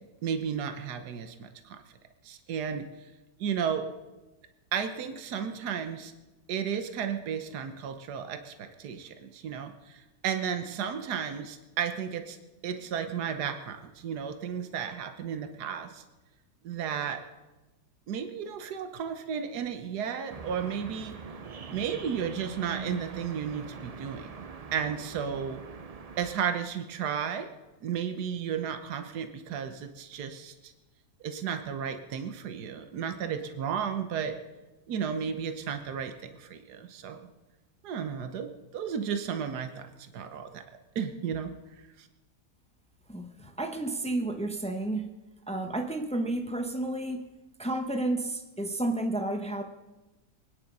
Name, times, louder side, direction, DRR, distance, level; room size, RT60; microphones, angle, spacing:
voice 1, 0.2-1.8 2.2-2.8 3.4-3.8 4.7-6.1 6.5-12.4 12.6-16.0 16.6-17.2 18.1-21.2 21.7-24.3 24.7-25.6 26.2-27.5 27.8-30.7 31.2-34.4 34.9-37.2 37.8-40.6 40.9-41.5 42.0-42.1, right 7 dB, 75° right, 7 dB, 1.6 m, -33 dB
sound 1, 20.3-26.4, right 5 dB, 60° right, 0.4 m, -43 dB
voice 2, 43.1-45.1 45.5-47.2 47.6-49.6, right 2 dB, 5° left, 5 dB, 0.9 m, -31 dB
24.0 x 10.0 x 5.4 m, 1.1 s
omnidirectional pair, 1.7 m